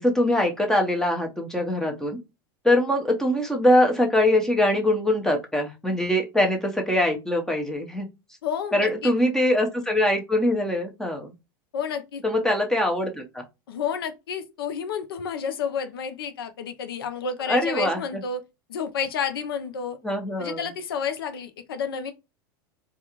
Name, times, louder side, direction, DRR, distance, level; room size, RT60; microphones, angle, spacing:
voice 1, 0.0-2.2 2.6-8.1 8.7-11.3 12.2-13.4 17.5-18.0 20.0-20.6, left 1 dB, 5° left, 0.7 m, -23 dB
voice 2, 8.4-9.1 11.7-12.2 13.7-18.4 18.7-20.0 20.4-22.1, left 6 dB, 90° left, 0.6 m, -30 dB
2.4 x 2.4 x 2.9 m
supercardioid pair, 115°, 12 cm